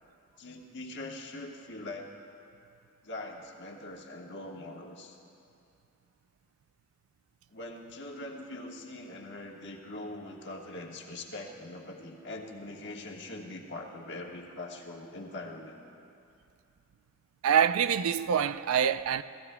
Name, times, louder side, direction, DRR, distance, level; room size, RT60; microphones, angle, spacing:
voice 1, 0.4-2.1 3.0-5.2 7.5-15.8, left 2 dB, 55° left, 1.4 m, -42 dB
voice 2, 17.4-19.2, right 8 dB, 85° right, 0.4 m, -25 dB
28.0 x 17.5 x 2.2 m
head